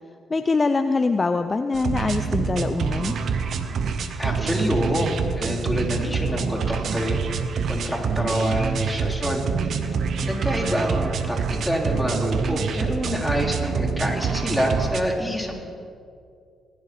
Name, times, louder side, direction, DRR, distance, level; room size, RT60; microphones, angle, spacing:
voice 1, 0.3-3.2, left 3 dB, 35° left, 9 dB, 0.6 m, -23 dB
sound 1, 1.7-15.0, right 5 dB, 60° right, 0.9 m, -26 dB
voice 2, 4.2-7.2 7.7-9.4 10.2-15.5, equal, ahead, -4 dB, 4.1 m, -26 dB
20.0 x 11.0 x 4.6 m, 2.4 s
hypercardioid pair, 40°, 0 cm